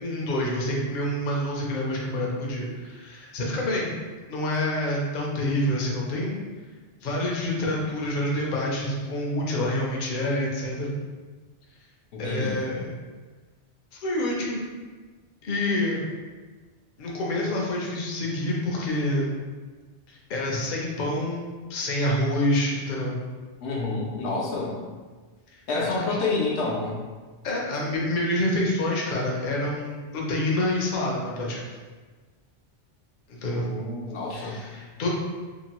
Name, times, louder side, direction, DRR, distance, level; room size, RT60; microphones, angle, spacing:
voice 1, 0.0-3.9 4.3-6.4 7.0-11.0 12.2-12.8 13.9-14.6 15.4-16.0 17.0-19.4 20.1-23.2 25.5-26.0 27.4-31.6 33.3-33.7 34.3-35.1, left 1 dB, 55° left, -3 dB, 0.7 m, -27 dB
voice 2, 12.1-12.7 23.6-24.8 25.7-27.0 33.5-34.6, left 3 dB, 80° left, -3 dB, 0.9 m, -29 dB
2.9 x 2.3 x 2.9 m, 1.4 s
omnidirectional pair, 1.1 m